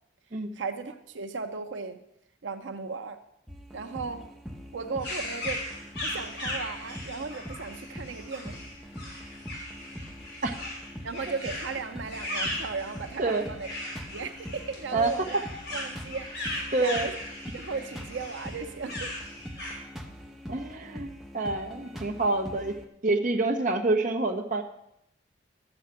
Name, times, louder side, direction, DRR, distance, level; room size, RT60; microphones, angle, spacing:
voice 1, 0.3-2.0 2.4-3.2 3.7-4.3 4.7-5.6 6.0-8.6 11.0-13.7 14.1-15.4 15.7-17.1 17.5-19.1, right 4 dB, 85° right, 7 dB, 0.7 m, -36 dB
sound 1, 3.5-22.9, equal, ahead, 0.8 m, -43 dB
sound 2, 5.0-19.8, left 1 dB, 65° left, 3.6 m, -38 dB
voice 2, 16.7-17.1 20.5-22.7 23.0-24.6, right 2 dB, 45° right, 4 dB, 1.0 m, -27 dB
11.5 x 7.3 x 5.9 m, 0.79 s
head